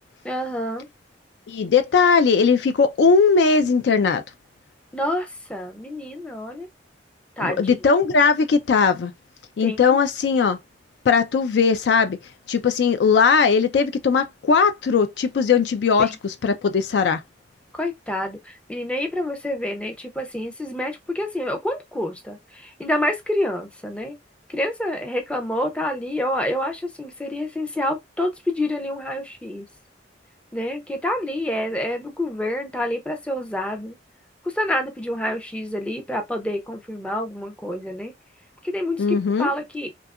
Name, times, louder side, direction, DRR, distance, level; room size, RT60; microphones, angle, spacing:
voice 1, 0.2-0.9 4.9-6.7 7.4-7.8 9.6-10.0 16.0-16.1 17.8-24.2 24.5-29.7 30.5-34.0 34.4-38.1 38.6-39.9, left 1 dB, 5° left, 0.4 m, -28 dB
voice 2, 1.5-4.2 7.4-9.1 9.6-10.6 11.1-12.2 12.5-17.2 39.0-39.5, left 5 dB, 65° left, 0.4 m, -19 dB
2.7 x 2.3 x 2.3 m
head